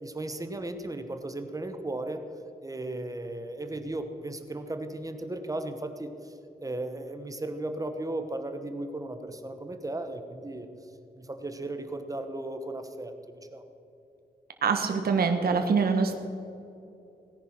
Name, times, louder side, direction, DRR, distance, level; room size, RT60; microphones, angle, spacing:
voice 1, 0.0-2.2 2.6-6.3 6.6-10.7 11.2-13.7, right 2 dB, 20° right, 8 dB, 1.1 m, -36 dB
voice 2, 14.6-16.2, right 5 dB, 70° right, 5 dB, 1.3 m, -24 dB
17.5 x 10.5 x 5.9 m, 2.8 s
wide cardioid pair, 115°, 16 cm